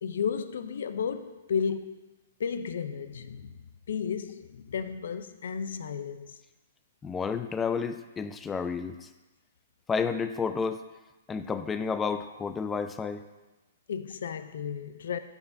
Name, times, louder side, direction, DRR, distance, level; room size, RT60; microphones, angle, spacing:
voice 1, 0.0-2.1 2.4-6.4 13.9-15.2, left 6 dB, 75° left, 0.5 m, -33 dB
voice 2, 7.0-9.1 9.9-10.8 11.3-13.2, left 5 dB, 15° left, 0.3 m, -31 dB
12.0 x 4.8 x 2.6 m
hypercardioid pair, 135°, 0 cm